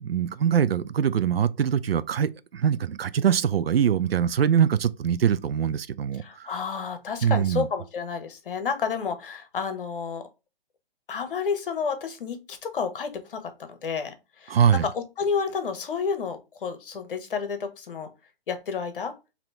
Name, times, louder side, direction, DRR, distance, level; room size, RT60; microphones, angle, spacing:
voice 1, 0.0-6.5 7.2-7.7 14.5-14.9, right 8 dB, 80° right, 0.4 m, -23 dB
voice 2, 6.2-10.2 11.1-13.4 13.7-14.6 14.8-18.1 18.5-19.1, left 5 dB, 60° left, 1.0 m, -30 dB
4.2 x 2.8 x 3.2 m
figure-of-eight pair, 130°, 30 cm